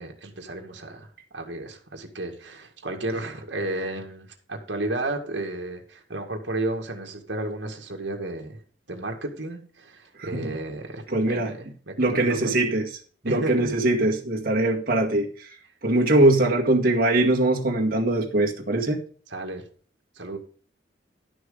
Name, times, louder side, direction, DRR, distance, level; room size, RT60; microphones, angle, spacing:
voice 1, 0.0-12.7 13.2-13.7 19.3-19.6 20.2-20.4, right 2 dB, 70° right, 1.9 m, -33 dB
voice 2, 11.1-11.5 12.0-12.8 13.2-15.3 15.8-19.0, right 2 dB, 50° right, 2.0 m, -21 dB
11.5 x 6.3 x 5.0 m
head